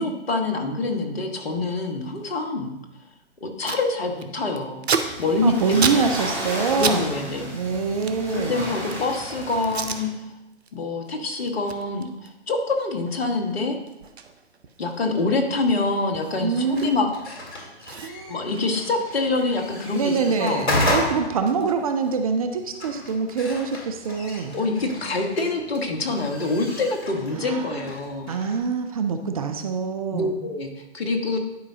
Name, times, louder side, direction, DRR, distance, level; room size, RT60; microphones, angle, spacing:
voice 1, 0.0-2.8 3.4-4.9 5.2-6.1 6.8-7.6 8.3-10.3 10.7-13.8 14.8-17.1 18.3-20.7 24.5-28.3 30.1-31.4, left 3 dB, 60° left, 4 dB, 1.4 m, -26 dB
Packing tape duct tape, 3.1-3.2 3.4-3.9 4.2-7.0 7.3-9.1 9.6-10.0 10.5-10.7 11.0-17.3 17.5-17.6 17.9-20.2 20.5-22.5, right 6 dB, 70° right, 0.8 m, -33 dB
sound 1, 5.0-10.0, right 1 dB, 5° left, 1.7 m, -34 dB
voice 2, 5.4-7.1 7.5-8.7 16.4-17.0 18.0-18.4 19.9-24.6 27.3-27.9 28.3-30.4, right 5 dB, 35° right, 6 dB, 0.5 m, -25 dB
sound 2, 16.6-28.6, left 1 dB, 80° left, 2.2 m, -33 dB
11.0 x 5.2 x 2.8 m, 0.94 s
figure-of-eight pair, 130°, 33 cm